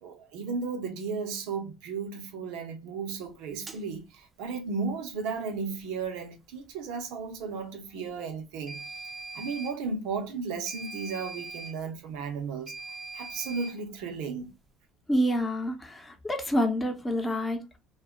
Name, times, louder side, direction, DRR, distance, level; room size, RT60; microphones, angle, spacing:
voice 1, 0.0-8.8 9.3-12.7 13.1-14.5, right 5 dB, 75° right, 0.7 m, -34 dB
sound 1, 3.7-3.8 8.7-9.8 10.7-11.8 12.7-13.8, right 3 dB, 20° right, 0.6 m, -41 dB
voice 2, 15.1-17.8, equal, 15° left, 0.8 m, -28 dB
2.3 x 2.1 x 3.5 m
hypercardioid pair, 70°, 0 cm